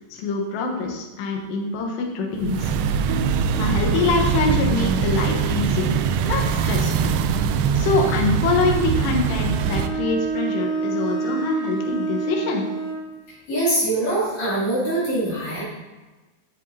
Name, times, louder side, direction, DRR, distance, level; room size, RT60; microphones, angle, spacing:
voice 1, 0.1-2.7 3.6-7.1 7.7-12.6, left 4 dB, 75° left, 1 dB, 3.0 m, -25 dB
sound 1, 2.4-9.9, right 6 dB, 85° right, 2.6 m, -22 dB
Bowed string instrument, 9.2-13.1, right 4 dB, 65° right, 2.5 m, -28 dB
voice 2, 13.5-15.6, right 1 dB, 40° left, -9 dB, 3.5 m, -23 dB
10.0 x 7.1 x 2.7 m, 1.2 s
omnidirectional pair, 5.4 m